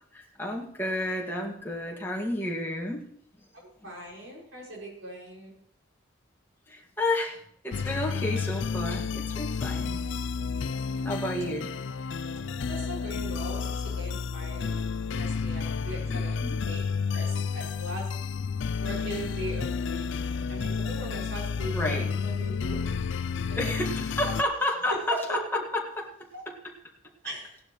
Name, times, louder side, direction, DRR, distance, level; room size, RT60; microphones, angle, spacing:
voice 1, 0.1-3.0 6.7-10.1 11.0-11.8 16.1-16.6 21.7-22.1 23.6-26.1, left 1 dB, 10° left, -1 dB, 1.9 m, -31 dB
voice 2, 3.5-5.5 11.0-11.3 12.5-14.8 15.1-16.3 16.7-16.9 17.1-18.1 18.8-20.0 20.5-22.9 23.5-24.3 24.9-25.6 26.3-26.4 27.2-27.6, right 1 dB, 75° right, -3 dB, 6.0 m, -39 dB
sound 1, 7.7-24.4, left 5 dB, 65° left, 0.4 m, -31 dB
17.0 x 11.5 x 3.1 m, 0.66 s
head